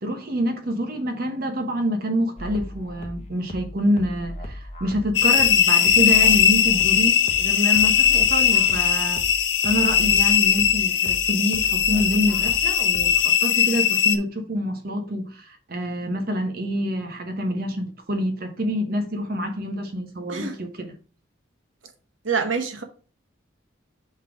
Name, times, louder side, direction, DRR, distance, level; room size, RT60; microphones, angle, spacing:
voice 1, 0.0-9.2 9.6-20.9, equal, 50° right, 1.1 m, -26 dB
sound 1, 2.4-13.4, equal, 30° left, 0.9 m, -37 dB
sound 2, 5.1-14.2, left 9 dB, 60° left, 0.7 m, -19 dB
voice 2, 22.2-22.8, right 5 dB, 80° right, 1.1 m, -26 dB
5.5 x 3.9 x 4.7 m
head